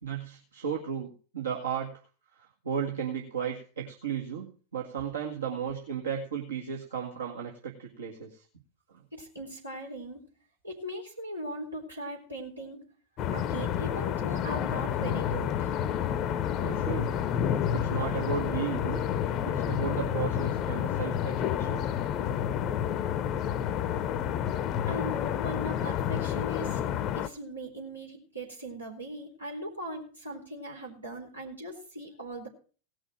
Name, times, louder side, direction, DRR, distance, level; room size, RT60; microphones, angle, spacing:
voice 1, 0.0-1.9 2.3-8.4 8.9-9.0 16.6-17.2 17.7-19.0 19.5-21.9, right 7 dB, 70° right, -2 dB, 1.9 m, -35 dB
voice 2, 9.1-10.2 10.6-12.8 13.3-15.7 24.9-26.8 27.2-32.5, right 1 dB, 85° right, -2 dB, 3.9 m, -39 dB
sound 1, 13.2-27.3, left 9 dB, 35° left, 0.7 m, -29 dB
17.5 x 6.3 x 6.1 m, 0.40 s
figure-of-eight pair, 90°, 0 cm